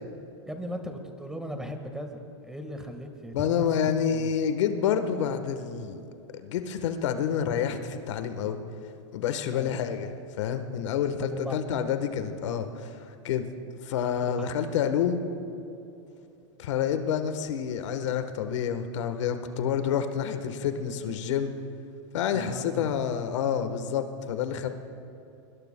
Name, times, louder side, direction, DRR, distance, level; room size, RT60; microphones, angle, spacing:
voice 1, 0.4-3.6 4.1-4.3 9.5-9.7 11.2-11.6 14.2-14.5 22.3-22.9, equal, 5° right, 5 dB, 1.5 m, -38 dB
voice 2, 3.3-6.1 6.3-8.6 9.1-10.1 10.4-13.5 13.8-15.2 16.6-21.5 22.1-24.7, left 8 dB, 75° left, 8 dB, 1.3 m, -28 dB
25.0 x 22.5 x 2.2 m, 2.8 s
hypercardioid pair, 125°, 16 cm